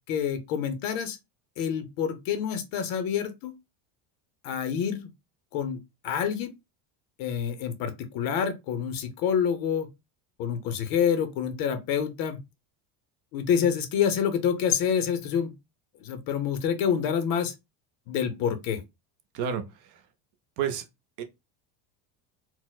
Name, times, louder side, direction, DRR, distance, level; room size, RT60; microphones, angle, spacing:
voice 1, 0.1-1.2 1.6-3.5 4.4-5.1 5.5-5.8 6.0-6.5 7.2-9.9 10.4-12.4 13.3-15.5 16.0-17.5 18.1-18.8, left 8 dB, 50° left, 0.5 m, -27 dB
voice 2, 19.3-20.0 20.6-20.8 21.2-21.3, right 8 dB, 45° right, 0.5 m, -30 dB
4.2 x 2.0 x 2.2 m
cardioid pair, 165°, 47 cm